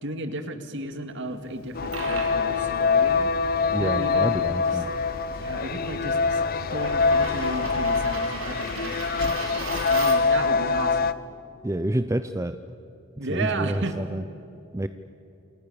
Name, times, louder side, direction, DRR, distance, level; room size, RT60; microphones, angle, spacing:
voice 1, 0.0-4.4 4.7-4.8 5.3-6.4 6.7-11.1 13.2-13.9, right 2 dB, 60° right, 7 dB, 2.3 m, -34 dB
Coin (dropping), 1.6-10.4, right 4 dB, 85° right, 4.2 m, -39 dB
sound 1, 1.7-11.1, left 4 dB, 45° left, 0.7 m, -24 dB
voice 2, 3.7-4.9 11.6-12.6 13.2-14.2 14.7-14.9, right 1 dB, 15° right, 10 dB, 0.6 m, -28 dB
28.5 x 28.0 x 7.0 m, 2.9 s
head